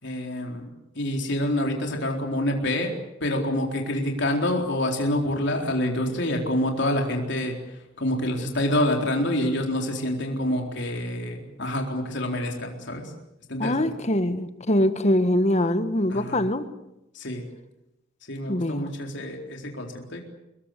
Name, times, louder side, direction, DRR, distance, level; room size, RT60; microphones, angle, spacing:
voice 1, 0.0-0.7 0.9-2.9 3.2-13.1 13.5-13.9 16.1-16.4 17.1-17.4 18.3-20.2, left 1 dB, 60° left, 2 dB, 4.1 m, -27 dB
voice 2, 13.6-16.7 18.5-18.9, left 1 dB, 35° left, 11 dB, 1.5 m, -23 dB
24.5 x 21.5 x 8.3 m, 0.89 s
head